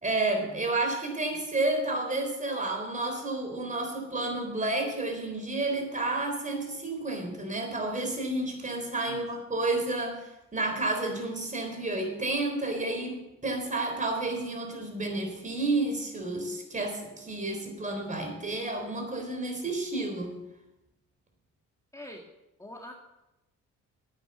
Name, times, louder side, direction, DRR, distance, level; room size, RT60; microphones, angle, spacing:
voice 1, 0.0-10.2 10.5-20.4, right 2 dB, 25° right, 4 dB, 3.8 m, -31 dB
voice 2, 22.6-22.9, left 1 dB, 10° left, 0 dB, 1.7 m, -43 dB
9.7 x 9.1 x 7.8 m, 0.94 s
cardioid pair, 90°, 30 cm